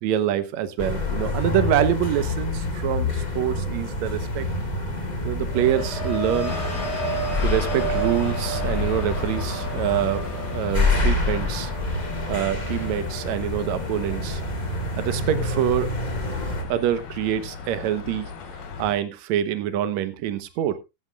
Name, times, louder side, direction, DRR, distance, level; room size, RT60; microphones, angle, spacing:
voice 1, 0.0-4.5 5.2-6.6 7.4-10.2 10.5-11.7 12.3-14.4 15.0-15.9 16.7-18.3 18.8-20.8, right 11 dB, 70° right, 1.8 m, -25 dB
sound 1, 0.8-16.6, left 2 dB, 65° left, 0.4 m, -27 dB
sound 2, 5.4-15.1 15.5-15.9, right 5 dB, 25° right, 6.4 m, -35 dB
sound 3, 6.4-18.9, left 5 dB, 80° left, 3.9 m, -37 dB
16.0 x 11.5 x 2.4 m
omnidirectional pair, 4.2 m